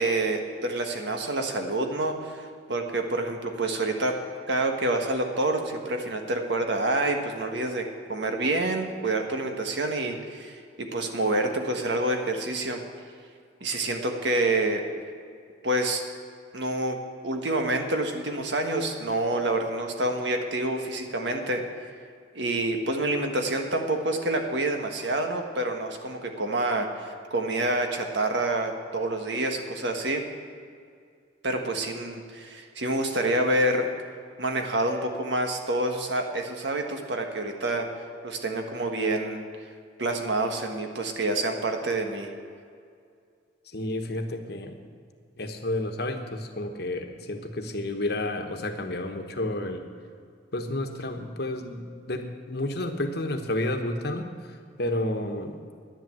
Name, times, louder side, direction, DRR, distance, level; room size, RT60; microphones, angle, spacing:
voice 1, 0.0-4.2 4.5-12.8 13.6-14.8 15.6-16.0 16.5-21.6 22.3-30.2 31.4-33.8 34.4-37.9 38.2-39.4 40.0-42.3, right 2 dB, 70° right, 4 dB, 1.5 m, -27 dB
voice 2, 43.7-44.8 45.4-49.8 50.5-55.6, left 1 dB, 60° left, 5 dB, 1.2 m, -31 dB
10.5 x 10.5 x 7.6 m, 2.2 s
head